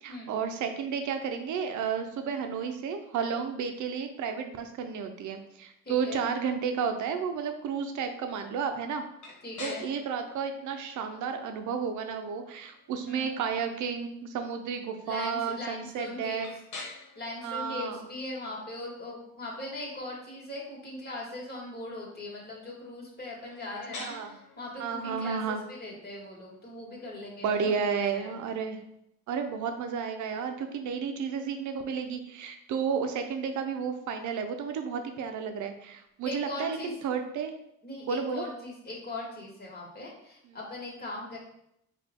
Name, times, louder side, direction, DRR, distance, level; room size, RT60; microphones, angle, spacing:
voice 1, 0.0-9.0 9.6-16.5 17.4-18.1 24.1-24.4 24.8-25.6 27.4-28.8 29.3-37.5 38.1-38.4 40.5-40.6, right 6 dB, 75° right, 6 dB, 0.7 m, -32 dB
voice 2, 5.8-6.2 9.4-9.9 13.1-13.3 15.0-16.5 17.1-28.5 36.3-36.9 37.8-41.4, left 2 dB, 30° left, -3 dB, 1.7 m, -40 dB
sound 1, 9.2-28.9, left 3 dB, 75° left, 1.2 m, -50 dB
4.9 x 2.5 x 3.6 m, 0.78 s
cardioid pair, 90°, 30 cm